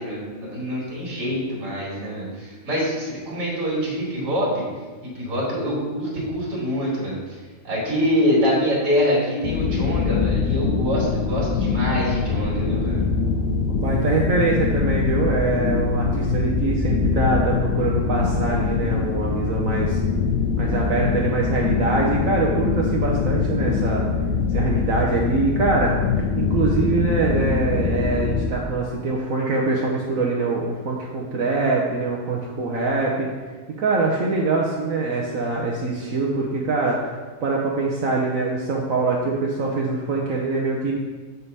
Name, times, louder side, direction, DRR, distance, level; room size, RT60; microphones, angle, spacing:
voice 1, 0.0-4.6 5.1-7.2 7.6-13.0, equal, 80° right, -6 dB, 2.9 m, -25 dB
sound 1, 9.4-28.5, left 5 dB, 85° left, 1.3 m, -23 dB
voice 2, 13.7-20.0 20.6-24.0 24.5-33.3 33.8-40.9, right 3 dB, 60° right, -2 dB, 1.2 m, -24 dB
8.0 x 3.9 x 5.4 m, 1.4 s
omnidirectional pair, 1.8 m